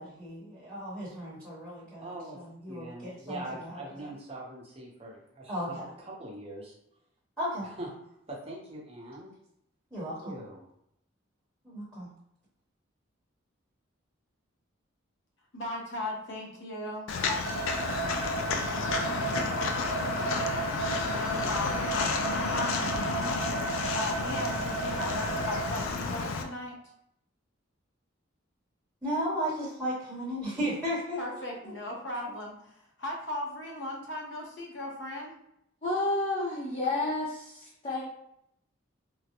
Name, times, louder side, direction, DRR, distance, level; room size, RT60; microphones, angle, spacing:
voice 1, 0.0-4.1 5.5-5.9 7.4-7.7 9.9-10.3 11.6-12.1 29.0-31.2 31.6-31.7, equal, ahead, -9 dB, 1.0 m, -35 dB
voice 2, 2.0-6.7 7.6-7.9 8.3-9.3 10.0-10.7 21.3-21.9, right 1 dB, 30° right, -3 dB, 0.8 m, -43 dB
voice 3, 15.5-17.5 21.1-21.9 22.5-23.0 23.7-26.7 31.2-35.4, left 1 dB, 60° left, -1 dB, 0.8 m, -37 dB
Walk footsteps, 17.1-26.4, left 4 dB, 85° left, 0.4 m, -31 dB
sound 1, 17.4-25.6, right 4 dB, 70° right, 0.4 m, -34 dB
voice 4, 35.8-38.0, left 2 dB, 30° left, -8 dB, 0.7 m, -30 dB
3.7 x 2.1 x 2.9 m, 0.76 s
head